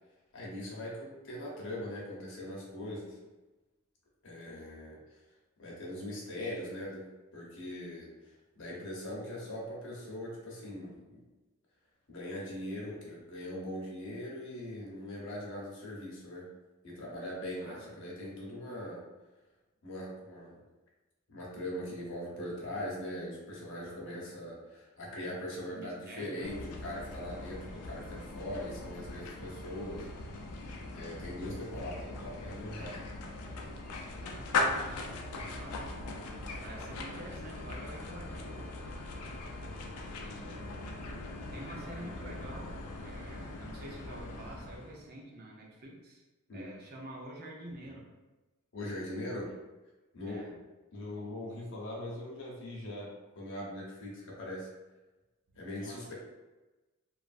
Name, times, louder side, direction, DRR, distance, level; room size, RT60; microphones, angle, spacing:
voice 1, 0.3-3.2 4.2-5.2 5.6-7.0 7.3-11.2 12.1-16.5 16.8-19.0 19.8-20.6 21.3-30.6 30.9-33.1 46.5-46.7 48.7-49.5 50.1-50.6 50.9-54.7 55.5-56.1, left 1 dB, 55° left, -4 dB, 0.8 m, -41 dB
voice 2, 17.6-18.0 24.0-24.2 25.7-26.5 34.2-35.9 36.2-38.8 39.9-40.8 41.5-46.2 46.5-48.1 49.5-49.6 50.3-50.5 55.7-56.1, right 1 dB, 45° right, -2 dB, 0.5 m, -48 dB
sound 1, 26.4-45.0, left 2 dB, 90° left, 0.4 m, -40 dB
3.0 x 2.4 x 2.4 m, 1.1 s
head